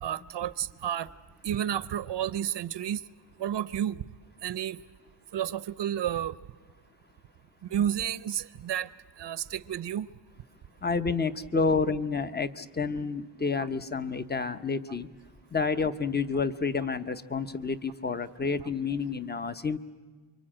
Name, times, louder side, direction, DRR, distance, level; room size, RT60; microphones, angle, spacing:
voice 1, 0.0-1.1 1.4-3.0 3.4-4.0 4.4-4.8 5.3-6.4 7.7-8.9 9.2-10.1 18.6-18.7, right 10 dB, 75° right, 17 dB, 0.7 m, -31 dB
voice 2, 10.8-15.1 15.5-19.8, left 4 dB, 25° left, 12 dB, 0.8 m, -29 dB
27.5 x 24.0 x 8.8 m, 1.4 s
wide cardioid pair, 150°, 42 cm